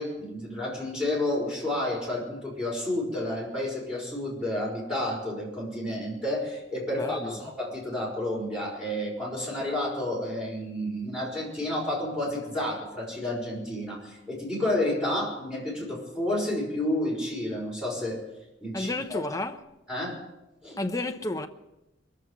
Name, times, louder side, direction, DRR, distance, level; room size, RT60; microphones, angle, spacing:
voice 1, 0.0-18.2 18.6-19.2 19.9-20.2 20.6-20.8, left 1 dB, 5° right, 5.8 m, -30 dB
voice 2, 6.9-7.5 18.7-19.6 20.8-21.5, left 2 dB, 15° left, 0.9 m, -31 dB
22.5 x 7.7 x 8.3 m
head